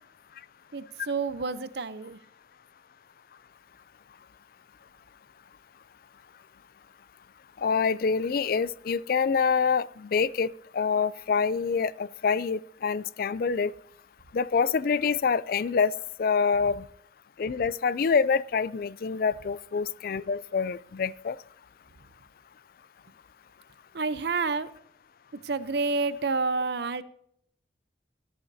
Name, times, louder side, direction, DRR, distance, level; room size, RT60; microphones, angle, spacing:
voice 1, 0.7-2.2 23.9-24.7 25.4-27.0, right 4 dB, 60° right, 14 dB, 0.7 m, -29 dB
voice 2, 7.6-13.7 14.3-15.9 16.2-16.8 17.4-21.4, left 5 dB, 50° left, 19 dB, 0.4 m, -26 dB
19.0 x 10.5 x 2.7 m, 0.69 s
head